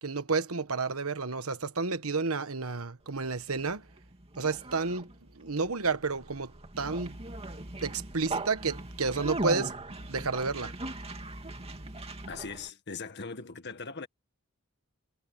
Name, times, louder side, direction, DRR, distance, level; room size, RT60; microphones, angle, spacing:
voice 1, 0.0-3.9 4.4-5.1 5.3-7.2 7.8-10.7, right 4 dB, 70° right, 1.3 m, -31 dB
Conversation, 3.4-12.7, right 2 dB, 30° right, 2.6 m, -39 dB
voice 2, 12.3-14.1, left 4 dB, 50° left, 1.7 m, -40 dB
head